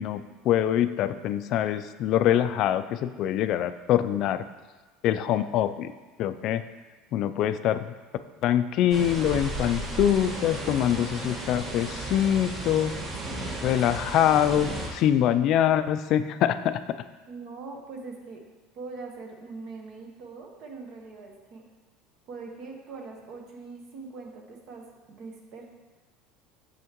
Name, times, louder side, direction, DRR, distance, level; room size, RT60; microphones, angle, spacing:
voice 1, 0.0-4.4 5.0-5.9 6.2-6.6 7.1-7.9 8.4-12.9 13.6-16.8, left 11 dB, 55° left, 11 dB, 0.3 m, -24 dB
sound 1, 8.9-14.9, right 2 dB, 40° right, 1.5 m, -34 dB
voice 2, 17.3-18.4 18.7-21.6 22.3-25.6, right 4 dB, 55° right, 1 dB, 1.1 m, -42 dB
7.2 x 6.3 x 3.0 m, 1.2 s
supercardioid pair, 115°, 0 cm